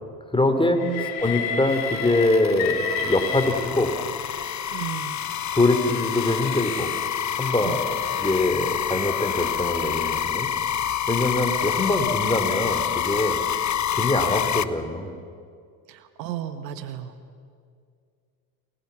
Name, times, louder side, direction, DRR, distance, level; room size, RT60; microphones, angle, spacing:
voice 1, 0.3-0.8 1.2-3.9 5.5-6.9 7.4-7.9 8.2-10.5 11.1-13.4 13.9-15.1, left 2 dB, 10° left, 6 dB, 3.7 m, -23 dB
Train, 0.8-4.2 5.0-10.3, left 7 dB, 70° left, 3.5 m, -34 dB
sound 1, 1.2-14.6, left 9 dB, 35° left, 1.0 m, -28 dB
voice 2, 4.7-5.2 7.6-7.8 15.9-17.1, right 11 dB, 85° right, 10 dB, 1.6 m, -34 dB
30.0 x 21.0 x 7.2 m, 2.2 s
hypercardioid pair, 70°, 50 cm